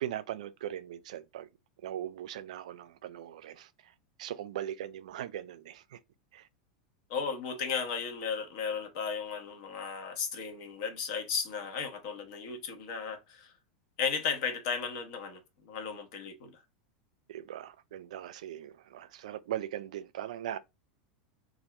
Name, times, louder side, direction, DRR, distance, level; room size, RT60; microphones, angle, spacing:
voice 1, 0.0-1.5 1.8-3.9 4.2-6.0 6.3-6.5 17.3-20.6, right 11 dB, 65° right, 0.3 m, -39 dB
voice 2, 7.1-13.5 14.0-16.6, left 6 dB, 55° left, 0.9 m, -35 dB
2.7 x 2.5 x 3.2 m
figure-of-eight pair, 90°, 4 cm